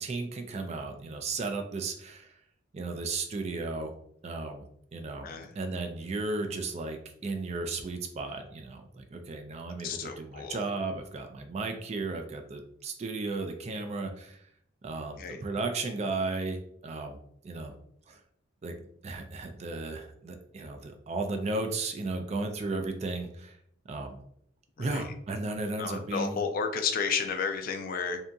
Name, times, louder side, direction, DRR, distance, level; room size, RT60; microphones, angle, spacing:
voice 1, 0.0-2.3 2.7-3.9 4.2-4.6 4.9-5.3 5.6-14.4 14.8-16.6 16.8-17.2 17.4-17.7 18.1-18.2 18.6-18.7 19.0-23.6 23.9-24.2 24.8-26.4, right 3 dB, 35° right, 5 dB, 0.3 m, -34 dB
voice 2, 5.2-5.5 9.8-10.7 15.2-15.4 24.8-25.0 25.8-28.2, left 6 dB, 50° left, 6 dB, 0.3 m, -32 dB
2.7 x 2.6 x 2.3 m, 0.68 s
head